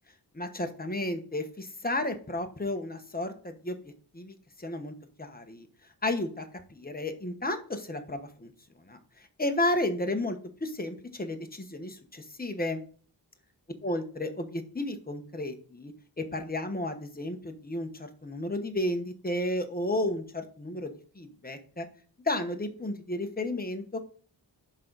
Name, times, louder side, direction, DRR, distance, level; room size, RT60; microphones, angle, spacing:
voice 1, 0.3-3.8 4.1-4.9 5.2-5.7 6.0-6.4 6.7-8.5 8.9-9.0 9.4-12.8 13.8-21.9 22.2-24.1, left 1 dB, 20° left, 6 dB, 1.1 m, -32 dB
10.5 x 3.9 x 4.0 m, 0.43 s
wide cardioid pair, 80°, 42 cm